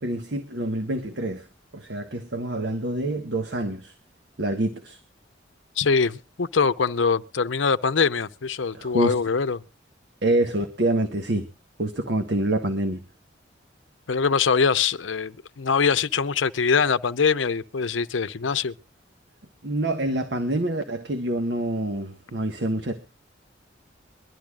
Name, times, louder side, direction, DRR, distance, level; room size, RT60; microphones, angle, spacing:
voice 1, 0.0-1.5 1.7-3.9 4.4-5.0 8.7-9.2 10.2-11.5 11.8-13.0 19.6-23.0, right 1 dB, 65° right, 1.3 m, -26 dB
voice 2, 5.8-9.6 14.1-18.7, left 5 dB, 90° left, 0.7 m, -23 dB
23.0 x 12.0 x 2.3 m
head